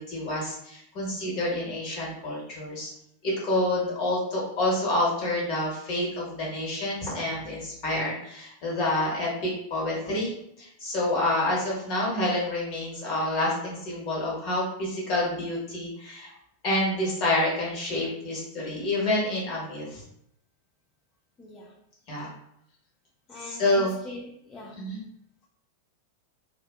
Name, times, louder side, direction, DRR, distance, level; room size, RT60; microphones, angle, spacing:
voice 1, 0.0-2.9 3.2-10.3 10.6-16.3 16.6-20.0 22.1-22.3 23.4-23.9 24.7-25.0, left 1 dB, 40° left, -5 dB, 1.1 m, -28 dB
voice 2, 21.4-21.7 23.3-24.8, left 2 dB, 20° left, -4 dB, 0.4 m, -42 dB
2.5 x 2.3 x 2.3 m, 0.75 s
figure-of-eight pair, 90°, 0 cm